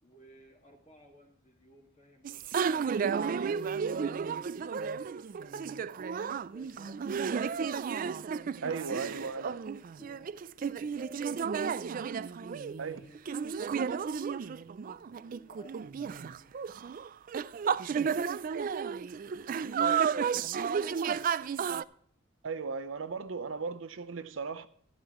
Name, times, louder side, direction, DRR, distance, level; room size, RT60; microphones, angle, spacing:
voice 1, 0.0-5.8 6.5-7.6 8.9-11.2 12.4-13.9 14.3-14.6 14.8-19.3, equal, 35° left, 1.9 m, -58 dB
sound 1, 2.2-21.8, right 6 dB, 45° right, 0.3 m, -33 dB
voice 2, 8.6-9.6 12.8-13.0 22.4-24.7, right 5 dB, 85° right, 0.7 m, -36 dB
13.0 x 12.0 x 3.0 m
head